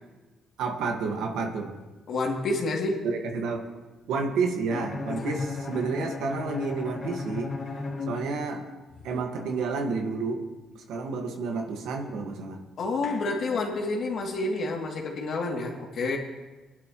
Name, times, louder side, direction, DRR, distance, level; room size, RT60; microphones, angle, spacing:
voice 1, 0.6-1.8 3.0-3.6 4.1-7.6 8.1-8.7 9.0-10.4 10.7-12.6, right 4 dB, 85° right, 3 dB, 1.7 m, -30 dB
voice 2, 2.1-3.1 5.1-5.4 12.8-16.2, left 2 dB, 60° left, -1 dB, 2.7 m, -29 dB
Bowed string instrument, 4.7-8.8, left 3 dB, 40° left, 2.5 m, -35 dB
24.0 x 11.5 x 3.1 m, 1.2 s
cardioid pair, 90°, 0 cm